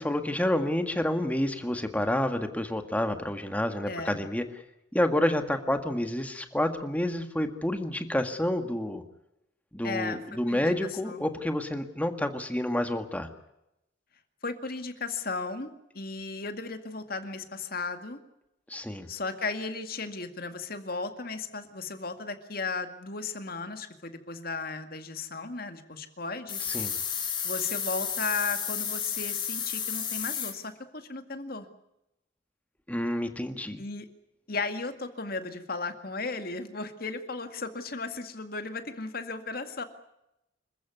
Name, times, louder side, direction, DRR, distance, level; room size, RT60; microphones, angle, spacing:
voice 1, 0.0-4.4 4.9-9.0 9.7-13.3 18.7-19.1 26.6-27.0 32.9-33.8, left 1 dB, 10° left, 7 dB, 1.7 m, -29 dB
voice 2, 3.9-4.2 9.8-10.2 10.5-10.7 11.1-11.3 14.4-18.2 19.1-26.6 27.4-31.7 33.8-34.1 34.5-39.8, left 3 dB, 50° left, 8 dB, 2.1 m, -35 dB
sound 1, 26.5-30.5, left 8 dB, 25° left, 4.5 m, -32 dB
27.0 x 14.5 x 9.6 m, 0.88 s
head